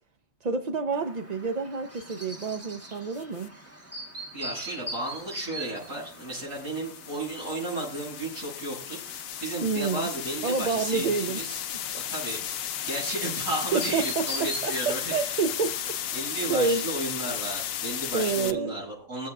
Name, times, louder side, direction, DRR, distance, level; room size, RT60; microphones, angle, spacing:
voice 1, 0.4-3.5 9.6-10.1 10.4-11.6 13.7-15.8 16.5-16.8 18.1-18.7, right 4 dB, 45° right, 5 dB, 0.6 m, -28 dB
Chirp tweet, 0.9-16.6, right 1 dB, 10° right, 1.2 m, -43 dB
sound 1, 3.2-3.5 5.6-18.5, left 10 dB, 85° left, 1.1 m, -34 dB
voice 2, 4.3-11.6 11.9-15.0 16.1-19.3, right 2 dB, 80° right, -6 dB, 7.4 m, -34 dB
22.5 x 7.9 x 2.4 m, 0.42 s
omnidirectional pair, 1.4 m